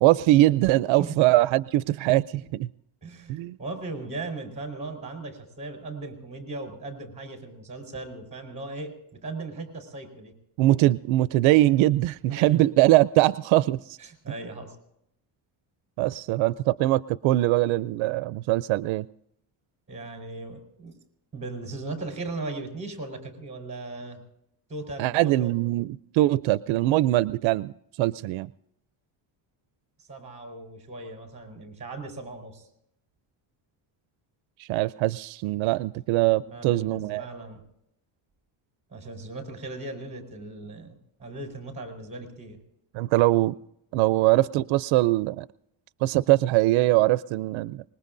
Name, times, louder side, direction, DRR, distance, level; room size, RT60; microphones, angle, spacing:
voice 1, 0.0-2.7 3.3-3.6 10.6-14.0 16.0-19.0 25.0-27.7 28.0-28.5 34.6-37.2 42.9-43.6 43.9-45.5 46.0-47.8, right 17 dB, 80° right, 16 dB, 0.5 m, -22 dB
voice 2, 3.0-8.9 9.2-10.3 12.3-12.6 14.0-14.8 19.9-21.0 21.3-24.2 24.7-25.5 30.0-32.7 36.4-37.6 38.9-42.6, right 2 dB, 15° right, 3 dB, 4.4 m, -38 dB
25.0 x 21.0 x 2.6 m, 0.77 s
cardioid pair, 160°, 46 cm